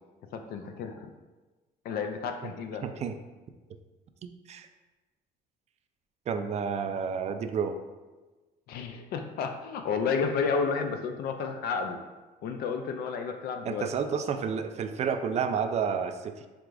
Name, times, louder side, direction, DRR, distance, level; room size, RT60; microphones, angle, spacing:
voice 1, 0.3-1.1 1.8-2.8 8.7-12.0 12.4-13.9, left 5 dB, 70° left, 6 dB, 0.4 m, -31 dB
voice 2, 2.8-3.2 4.2-4.7 6.3-7.8 13.7-16.5, right 6 dB, 40° right, 8 dB, 0.4 m, -30 dB
4.8 x 3.5 x 2.5 m, 1.2 s
cardioid pair, 110°, 17 cm